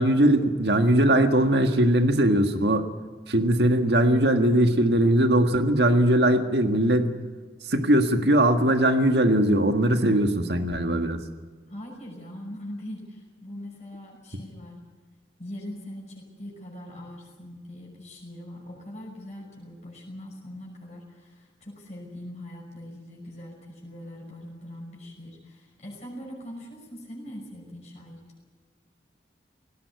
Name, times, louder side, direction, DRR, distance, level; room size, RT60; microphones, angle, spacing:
voice 1, 0.0-2.9 3.3-7.1 7.7-11.2, right 1 dB, 75° right, 6 dB, 1.7 m, -20 dB
voice 2, 11.7-14.8 15.4-28.2, left 1 dB, 40° left, -2 dB, 5.7 m, -41 dB
18.5 x 17.0 x 9.5 m, 1.4 s
head